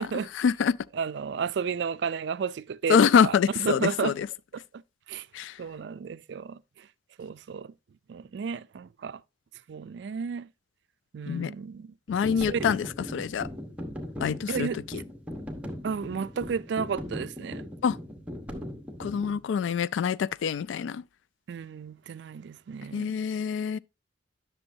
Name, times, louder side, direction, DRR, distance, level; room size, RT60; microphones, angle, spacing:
voice 1, 0.0-0.8 2.9-4.3 5.3-5.5 11.3-11.5 12.1-13.5 14.2-14.7 17.8-18.0 19.0-21.0 22.9-23.8, left 7 dB, 80° left, 0.3 m, -25 dB
voice 2, 0.9-4.1 4.5-4.8 5.1-5.3 5.6-6.6 7.2-7.7 8.1-9.2 9.7-10.5 11.1-11.9 12.2-12.7 14.5-15.0 15.8-17.6 21.5-23.2, right 6 dB, 65° right, 0.3 m, -33 dB
sound 1, 12.1-19.4, left 1 dB, 10° right, 1.1 m, -39 dB
10.5 x 6.2 x 2.7 m
head